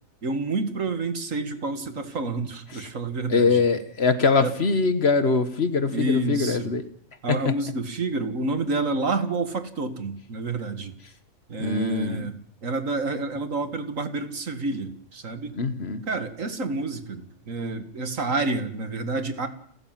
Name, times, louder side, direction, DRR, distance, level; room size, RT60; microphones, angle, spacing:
voice 1, 0.2-3.6 4.4-4.5 5.9-6.7 7.2-10.9 11.5-15.6 16.1-19.5, right 3 dB, 70° right, 8 dB, 2.3 m, -29 dB
voice 2, 3.3-6.8 7.3-7.5 11.6-12.3 15.6-16.0, left 4 dB, 50° left, 11 dB, 1.5 m, -23 dB
29.5 x 13.5 x 7.6 m, 0.65 s
omnidirectional pair, 1.4 m